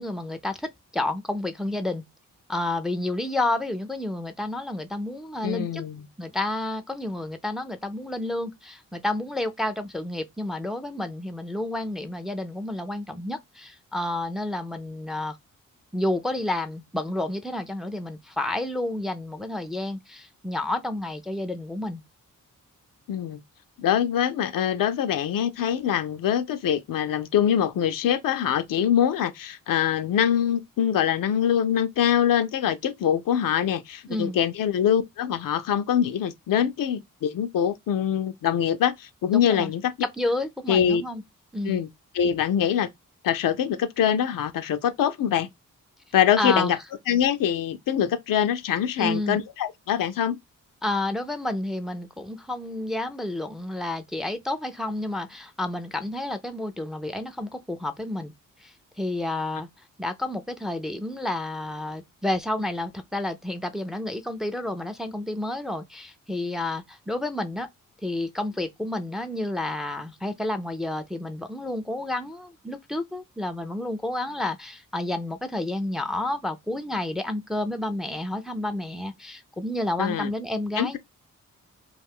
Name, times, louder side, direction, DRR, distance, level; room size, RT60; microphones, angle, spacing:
voice 1, 0.0-2.0 2.5-5.8 6.2-15.4 15.9-22.0 34.1-34.4 39.3-39.7 40.0-41.2 41.5-41.8 46.4-46.7 49.0-49.4 50.8-58.3 58.6-59.7 60.0-67.7 68.0-81.0, left 1 dB, ahead, 0.4 m, -30 dB
voice 2, 5.4-6.1 23.1-23.4 23.8-39.9 40.7-41.0 41.6-41.9 42.1-42.9 43.2-45.5 46.1-46.8 47.1-50.4 80.0-80.3 80.8-81.0, left 9 dB, 75° left, 0.5 m, -24 dB
2.5 x 2.3 x 3.5 m
cardioid pair, 60°, 33 cm